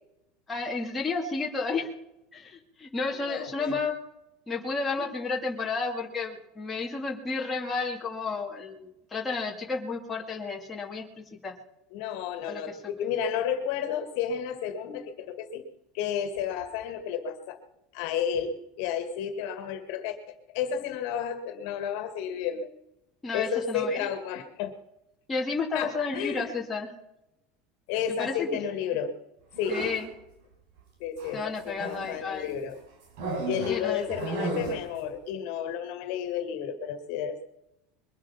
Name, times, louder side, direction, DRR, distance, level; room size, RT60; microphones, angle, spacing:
voice 1, 0.5-1.9 2.3-4.0 4.5-11.0 11.4-11.5 12.4-12.6 23.2-24.0 25.3-27.0 28.2-28.5 29.7-30.1 31.3-32.6 33.7-34.1, left 4 dB, 10° left, -2 dB, 2.3 m, -32 dB
voice 2, 3.1-3.8 5.0-5.1 11.9-15.6 15.9-17.6 17.9-20.2 20.5-22.7 23.3-24.8 25.7-26.6 27.9-29.2 29.6-29.8 31.0-32.8 33.5-37.4, left 8 dB, 55° left, 8 dB, 2.1 m, -32 dB
sound 1, 29.5-30.1 31.2-32.2 33.2-35.0, right 2 dB, 60° right, 4.3 m, -34 dB
23.0 x 8.7 x 5.7 m, 0.84 s
supercardioid pair, 175°, 0 cm